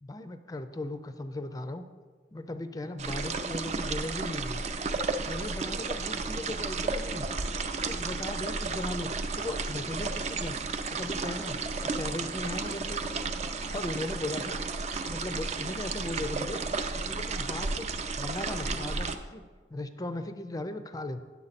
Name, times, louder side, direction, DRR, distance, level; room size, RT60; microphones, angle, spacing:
voice 1, 0.0-1.8 2.3-4.6 5.3-7.3 7.8-10.6 10.9-13.0 13.6-14.6 15.0-16.6 17.0-17.9 18.2-19.4 19.7-21.2, left 1 dB, 20° left, 10 dB, 0.4 m, -37 dB
sound 1, 3.0-19.2, right 4 dB, 40° right, 0.5 m, -33 dB
9.7 x 7.1 x 4.1 m, 1.5 s
head